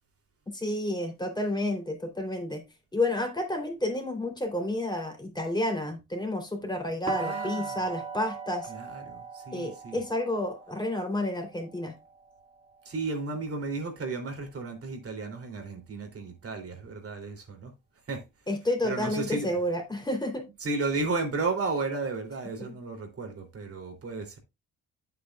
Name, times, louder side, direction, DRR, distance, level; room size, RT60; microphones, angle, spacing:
voice 1, 0.5-2.6 2.9-8.7 9.5-11.9 18.5-20.4, left 1 dB, 15° left, 3.1 m, -30 dB
sound 1, 7.1-12.9, right 4 dB, 20° right, 1.9 m, -39 dB
voice 2, 7.2-7.8 8.7-10.0 12.8-17.7 18.1-18.2 18.8-19.5 20.6-24.4, right 3 dB, 50° right, 2.9 m, -33 dB
9.1 x 8.5 x 2.3 m
cardioid pair, 90°, 30 cm